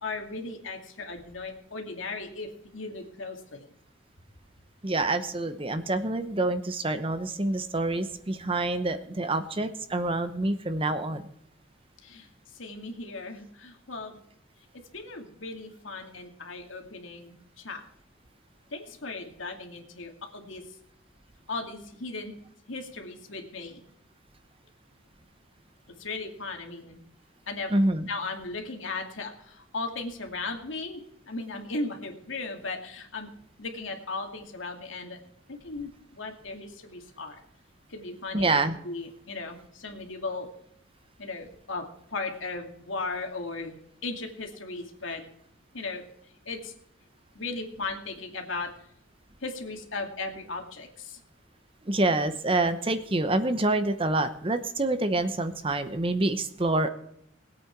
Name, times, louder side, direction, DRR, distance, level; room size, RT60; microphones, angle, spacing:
voice 1, 0.0-3.6 12.0-14.2 14.9-17.9 18.7-20.6 21.5-22.4 22.7-23.8 26.0-27.0 27.5-27.7 28.1-33.3 33.6-35.2 35.5-37.4 37.9-38.6 38.8-40.5 41.2-43.8 44.0-45.2 45.7-46.0 46.5-46.7 47.3-48.7 49.4-51.2, left 3 dB, 90° left, 3 dB, 2.4 m, -37 dB
voice 2, 4.8-11.3 27.7-28.1 38.3-38.8 51.9-56.9, right 2 dB, 30° right, 10 dB, 0.9 m, -27 dB
20.0 x 8.6 x 4.6 m, 0.72 s
head